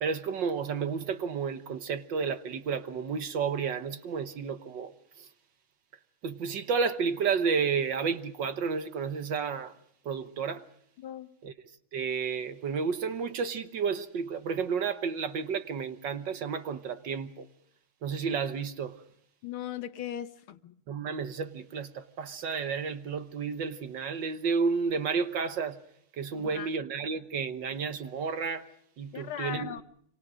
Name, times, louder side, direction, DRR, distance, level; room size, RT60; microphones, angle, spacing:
voice 1, 0.0-4.9 5.2-5.3 6.2-9.7 10.0-10.7 11.4-11.5 11.9-17.5 18.0-19.0 20.9-25.8 26.1-28.7 29.0-29.7, right 5 dB, 60° right, 1.7 m, -31 dB
voice 2, 11.0-11.3 19.4-20.7 26.3-26.7 29.1-29.8, left 11 dB, 70° left, 1.9 m, -38 dB
27.0 x 24.5 x 5.0 m
omnidirectional pair, 2.4 m